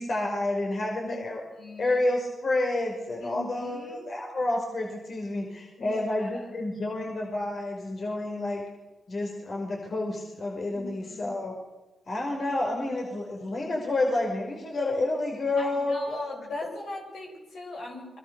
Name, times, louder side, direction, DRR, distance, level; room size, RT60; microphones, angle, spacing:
voice 1, 0.0-1.4 1.8-8.6 9.1-11.5 12.1-16.2, left 2 dB, 55° left, 0 dB, 5.4 m, -29 dB
voice 2, 1.6-2.0 3.2-4.1 5.8-6.5 10.7-11.3 15.6-18.2, left 2 dB, 75° left, -1 dB, 7.9 m, -40 dB
29.0 x 23.5 x 6.9 m, 1.1 s
hypercardioid pair, 40°, 0 cm